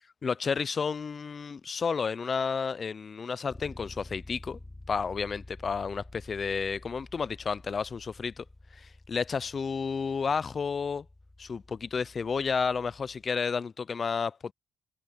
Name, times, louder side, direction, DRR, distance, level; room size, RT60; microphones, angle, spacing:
voice 1, 0.2-4.6 4.9-8.4 8.7-11.1 11.4-14.5, left 5 dB, 40° left, 0.5 m, -31 dB
Bass guitar, 3.5-13.3, left 2 dB, 15° left, 3.3 m, -50 dB
cardioid pair, 90°, 0 cm